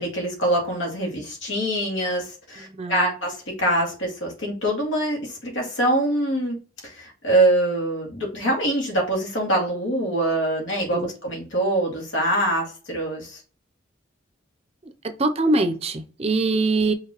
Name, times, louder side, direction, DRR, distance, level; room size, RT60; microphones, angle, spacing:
voice 1, 0.0-6.6 6.8-13.4, right 1 dB, 75° left, 2.2 m, -24 dB
voice 2, 2.6-3.1 10.9-11.1 15.2-16.9, right 2 dB, 30° right, 0.5 m, -23 dB
5.8 x 3.1 x 3.0 m
head